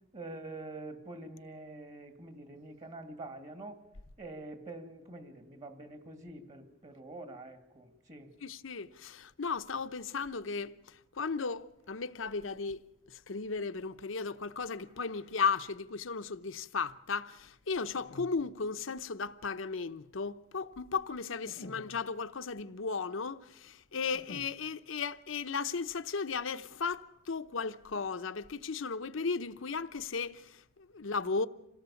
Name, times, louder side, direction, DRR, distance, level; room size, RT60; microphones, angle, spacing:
voice 1, 0.1-3.8 4.2-8.3 21.5-21.8, right 2 dB, 35° right, 2.3 m, -46 dB
voice 2, 8.4-12.8 13.1-31.5, left 5 dB, 70° left, 0.8 m, -35 dB
27.0 x 17.5 x 7.1 m
head